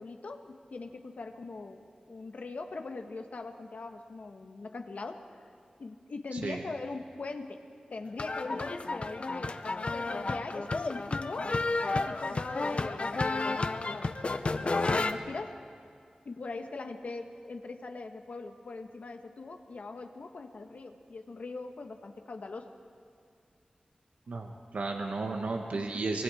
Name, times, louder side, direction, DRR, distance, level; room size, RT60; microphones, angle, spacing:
voice 1, 0.0-5.3 5.8-7.6 7.9-9.6 9.9-11.6 11.9-14.1 14.6-15.6 16.2-22.7, left 3 dB, 75° left, 5 dB, 1.3 m, -41 dB
sound 1, 8.2-15.1, left 3 dB, 55° left, 0.8 m, -31 dB
voice 2, 24.3-26.2, right 3 dB, 85° right, 2 dB, 1.2 m, -33 dB
24.0 x 23.0 x 4.9 m, 2.2 s
wide cardioid pair, 70°, 2 cm